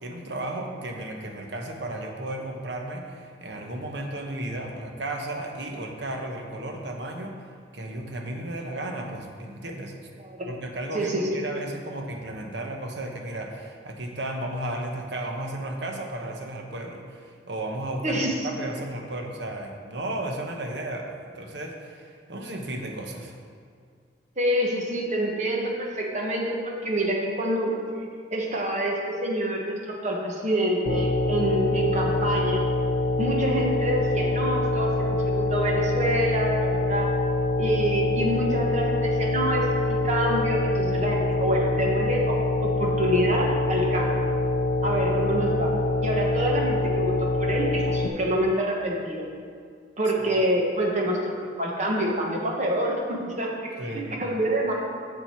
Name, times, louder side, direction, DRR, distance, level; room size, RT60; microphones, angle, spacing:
voice 1, 0.0-7.4 7.7-9.9 10.5-23.3 53.8-54.2, right 1 dB, 65° right, 2 dB, 1.0 m, -34 dB
voice 2, 10.9-11.4 18.0-18.5 24.4-27.7 28.3-32.6 33.2-37.1 37.6-44.2 44.8-45.7 46.0-49.2 50.0-54.7, right 1 dB, 35° right, -1 dB, 1.3 m, -27 dB
sound 1, 30.9-48.1, left 2 dB, 45° left, 0.5 m, -25 dB
7.6 x 7.3 x 4.6 m, 2.1 s
head